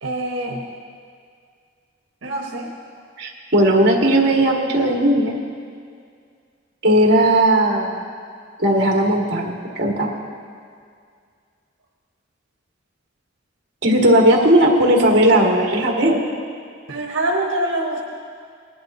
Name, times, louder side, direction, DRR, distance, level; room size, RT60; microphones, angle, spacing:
voice 1, 0.0-0.6 2.2-2.7 16.9-18.0, right 1 dB, 85° right, -2 dB, 1.2 m, -24 dB
voice 2, 3.2-5.3 6.8-8.0 8.6-10.1 13.8-16.2, right 1 dB, 60° right, -1 dB, 1.8 m, -16 dB
19.5 x 11.5 x 2.7 m, 2.2 s
head